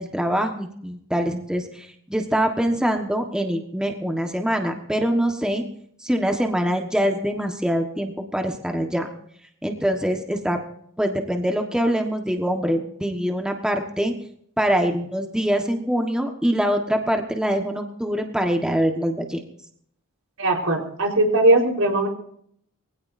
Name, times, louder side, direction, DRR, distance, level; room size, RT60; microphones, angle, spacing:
voice 1, 0.0-5.6 6.0-9.1 9.6-10.6 11.0-14.1 14.6-19.4, equal, 5° right, 4 dB, 1.3 m, -24 dB
voice 2, 20.4-22.1, right 2 dB, 80° right, 1 dB, 4.3 m, -19 dB
23.0 x 16.5 x 2.7 m, 0.67 s
head